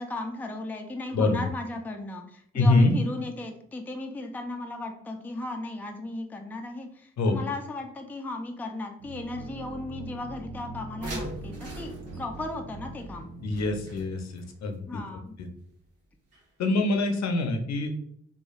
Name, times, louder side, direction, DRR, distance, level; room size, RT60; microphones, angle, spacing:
voice 1, 0.0-13.3 14.9-15.4, left 2 dB, 5° left, 4 dB, 0.4 m, -36 dB
voice 2, 2.5-2.9 7.2-7.4 13.4-15.0 15.4-15.5 16.6-17.9, left 2 dB, 65° left, 5 dB, 0.6 m, -24 dB
sound 1, 9.0-14.0, right 2 dB, 80° right, 0.6 m, -42 dB
sound 2, 11.0-14.4 16.3-16.4 16.8-16.9, right 1 dB, 55° right, 1.0 m, -40 dB
3.1 x 2.2 x 2.3 m, 0.66 s
supercardioid pair, 55°, 30 cm